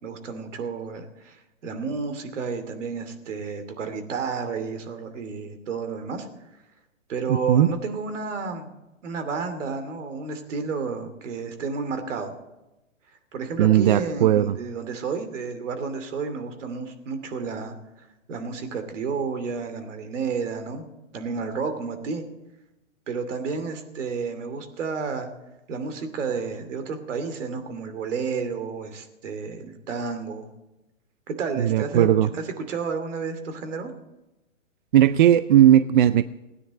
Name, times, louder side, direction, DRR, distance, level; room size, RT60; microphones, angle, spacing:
voice 1, 0.0-6.3 7.1-8.7 9.0-12.4 13.3-17.8 18.3-20.9 21.1-22.2 23.1-25.3 25.7-30.5 31.3-33.9, right 5 dB, 65° right, 8 dB, 2.8 m, -31 dB
voice 2, 7.3-7.7 13.6-14.6 31.6-32.3 34.9-36.2, right 11 dB, 40° right, 15 dB, 0.4 m, -17 dB
17.0 x 9.9 x 7.6 m, 0.99 s
hypercardioid pair, 145°, 39 cm